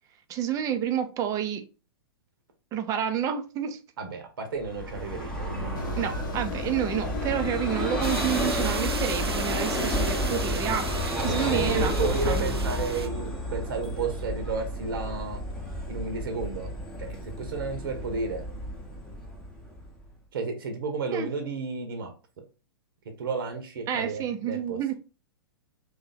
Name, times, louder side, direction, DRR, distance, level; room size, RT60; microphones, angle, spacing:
voice 1, 0.3-1.6 2.7-3.8 5.9-12.4 21.1-21.3 23.9-24.9, right 9 dB, 25° right, 0.6 m, -29 dB
voice 2, 4.0-6.2 11.2-15.4 15.9-16.7 17.0-18.4 20.3-22.1 23.2-24.9, right 4 dB, 65° right, 1.0 m, -32 dB
Vehicle, 4.6-20.1, equal, 5° left, 0.9 m, -31 dB
sound 1, 5.8-11.5, left 8 dB, 55° left, 0.5 m, -37 dB
sound 2, 8.0-13.1, right 4 dB, 85° right, 0.5 m, -36 dB
3.0 x 2.7 x 4.0 m
figure-of-eight pair, 110°, 13 cm